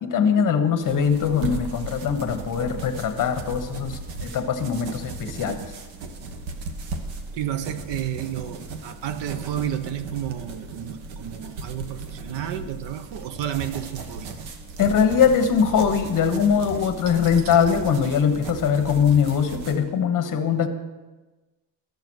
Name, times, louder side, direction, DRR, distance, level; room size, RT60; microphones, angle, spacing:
voice 1, 0.0-5.6 14.8-20.7, left 7 dB, 40° left, 7 dB, 1.2 m, -21 dB
sound 1, 0.8-19.8, right 3 dB, 80° right, 1.3 m, -36 dB
voice 2, 7.3-14.4 17.1-17.6, right 10 dB, 65° right, 13 dB, 0.8 m, -31 dB
13.0 x 7.0 x 6.2 m, 1.2 s
cardioid pair, 140°, 47 cm